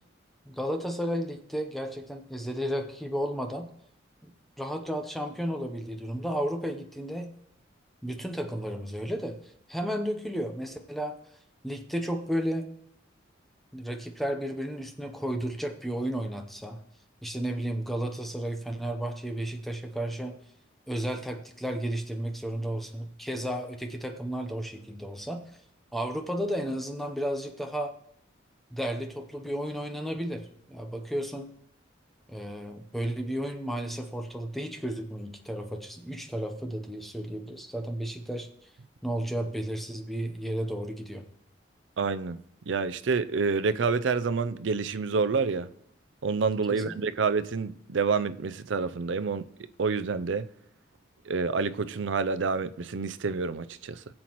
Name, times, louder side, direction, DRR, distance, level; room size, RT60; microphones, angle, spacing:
voice 1, 0.5-3.7 4.2-4.3 4.6-7.3 8.0-9.4 9.7-11.1 11.6-12.7 13.7-16.8 17.2-20.4 20.9-25.4 25.9-28.0 28.7-31.5 32.3-38.5 39.0-41.2 46.7-46.8, equal, ahead, 0.8 m, -33 dB
voice 2, 42.0-42.4 42.7-45.7 46.2-49.4 49.8-50.5 51.3-54.0, right 4 dB, 75° right, 0.5 m, -28 dB
19.5 x 7.5 x 3.1 m
head